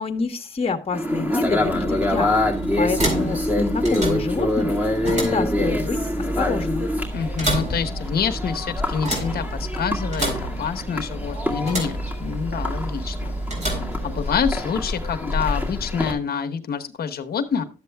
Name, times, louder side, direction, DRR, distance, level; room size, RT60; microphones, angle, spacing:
voice 1, 0.0-6.0 6.3-6.9, left 4 dB, 30° left, 6 dB, 1.3 m, -27 dB
sound 1, 0.9-16.1, left 1 dB, 5° right, 2.1 m, -26 dB
sound 2, 1.4-14.7, right 1 dB, 35° right, 4.3 m, -30 dB
voice 2, 7.1-13.3 13.7-17.6, left 6 dB, 50° left, 8 dB, 1.1 m, -27 dB
12.0 x 7.7 x 2.3 m, 0.31 s
cardioid pair, 90°, 20 cm